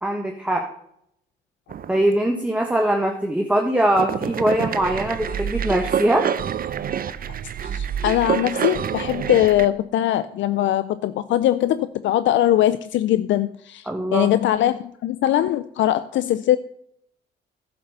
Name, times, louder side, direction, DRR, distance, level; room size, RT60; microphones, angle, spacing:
voice 1, 0.0-0.7 1.9-6.3 13.9-14.3, right 1 dB, 5° right, 2 dB, 1.4 m, -21 dB
sound 1, 1.7-2.3 4.0-9.7, right 8 dB, 45° right, 0.7 m, -27 dB
voice 2, 7.6-16.6, left 12 dB, 70° left, 13 dB, 0.5 m, -21 dB
11.0 x 6.8 x 6.8 m, 0.72 s
cardioid pair, 90°, 20 cm